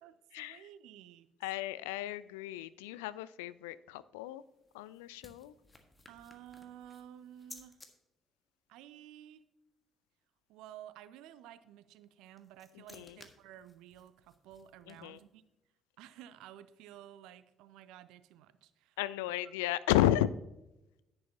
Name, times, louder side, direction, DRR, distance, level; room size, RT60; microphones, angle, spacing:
voice 1, 0.0-1.3 6.1-7.8 8.7-9.4 10.5-15.4 16.0-19.3, right 11 dB, 65° right, 15 dB, 0.5 m, -53 dB
voice 2, 1.4-4.4 4.7-5.5 12.9-13.2 14.9-15.2 19.0-20.3, left 13 dB, 75° left, 17 dB, 0.3 m, -33 dB
sound 1, 4.3-7.9 12.0-15.4, left 2 dB, 20° left, 1.6 m, -58 dB
10.5 x 10.0 x 2.8 m, 0.93 s
figure-of-eight pair, 45°, 0 cm